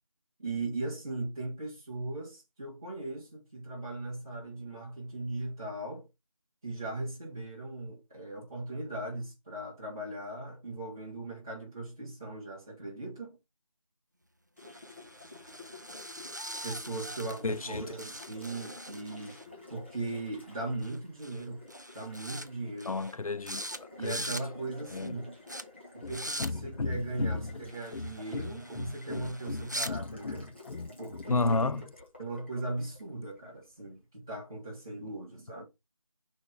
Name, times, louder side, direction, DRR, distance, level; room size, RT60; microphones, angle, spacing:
voice 1, 0.4-6.1 6.6-13.4 16.6-19.4 19.7-21.6 21.9-23.0 24.0-25.3 25.9-30.5 31.0-31.9 32.2-35.6, right 2 dB, 5° right, 1.3 m, -38 dB
Water tap faucet, 14.6-33.7, left 2 dB, 20° left, 1.5 m, -51 dB
sound 1, 14.6-17.7 18.0-19.5 20.8-21.0 21.2-21.5 21.7-22.5 22.8-23.1 23.5-23.8 24.0-24.4 24.9-25.1 25.5-25.6 26.1-26.5 27.7-29.9, equal, 35° right, 0.5 m, -42 dB
voice 2, 17.4-17.8 22.9-23.6 24.0-24.2 24.9-25.1 26.0-26.1 26.4-27.4 27.9-28.1 28.3-28.4 28.8-29.6 29.9-31.8, left 3 dB, 85° left, 0.5 m, -33 dB
6.4 x 4.4 x 3.6 m
figure-of-eight pair, 175°, 18 cm